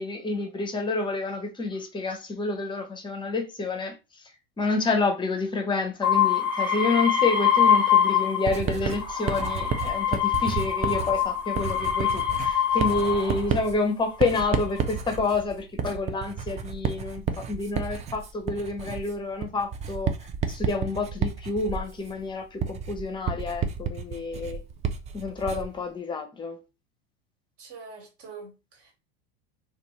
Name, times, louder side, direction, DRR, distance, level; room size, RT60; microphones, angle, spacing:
voice 1, 0.0-3.9 4.6-20.1 20.5-24.6 25.1-26.6, left 3 dB, 15° left, 0.7 m, -29 dB
sound 1, 6.0-8.6 8.9-13.5 14.2-14.8, left 8 dB, 5° right, 1.1 m, -24 dB
Writing, 8.5-25.8, right 6 dB, 25° right, 0.4 m, -31 dB
voice 2, 27.6-28.9, right 4 dB, 50° right, 1.6 m, -44 dB
2.5 x 2.3 x 3.0 m
hypercardioid pair, 95°, 30 cm